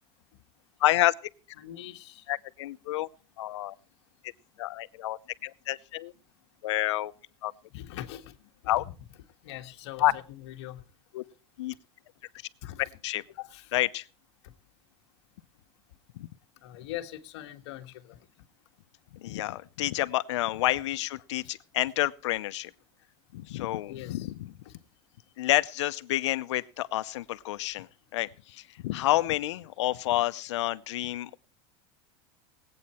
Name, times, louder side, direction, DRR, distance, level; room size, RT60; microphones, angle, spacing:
voice 1, 0.8-1.1 2.3-3.1 3.4-3.7 4.6-6.1 6.6-7.1 7.4-7.5 8.7-8.8 10.0-10.1 11.1-11.2 11.6-11.7 13.0-13.2 13.7-14.1 16.1-16.3 19.1-22.7 23.3-24.5 25.4-31.4, left 15 dB, 90° left, 0.7 m, -29 dB
voice 2, 1.6-2.3 7.7-8.8 9.4-10.8 12.6-12.8 13.4-13.7 16.6-18.3 23.9-24.3 24.6-24.7, left 13 dB, 70° left, 1.5 m, -42 dB
19.5 x 8.6 x 4.3 m
supercardioid pair, 155°, 15 cm